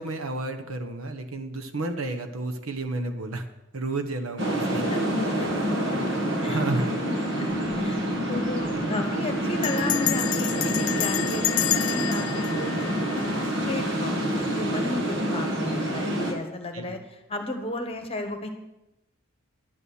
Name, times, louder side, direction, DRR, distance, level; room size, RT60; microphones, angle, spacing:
voice 1, 0.0-3.5 3.7-4.8 6.5-6.9 16.7-17.0, right 2 dB, 85° right, 6 dB, 1.1 m, -31 dB
sound 1, 4.4-16.3, right 1 dB, 60° right, 1.9 m, -27 dB
voice 2, 4.7-5.9 6.4-6.6 7.1-18.5, left 1 dB, 25° left, 5 dB, 1.2 m, -34 dB
Bell, 7.5-7.9 8.1-8.2 8.5-8.8 9.6-13.7, left 16 dB, 70° left, 0.3 m, -29 dB
11.0 x 8.5 x 6.5 m, 0.94 s
head